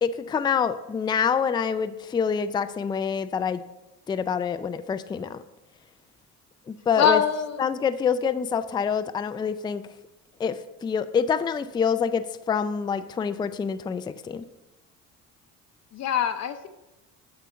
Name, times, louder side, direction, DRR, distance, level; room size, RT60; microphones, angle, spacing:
voice 1, 0.0-3.6 4.1-5.4 6.7-7.2 7.6-9.8 10.4-14.4, left 6 dB, 15° left, 12 dB, 0.3 m, -26 dB
voice 2, 7.0-7.7 15.9-16.7, left 7 dB, 50° left, 8 dB, 0.7 m, -24 dB
8.3 x 5.6 x 5.2 m, 0.99 s
cardioid pair, 100°, 35 cm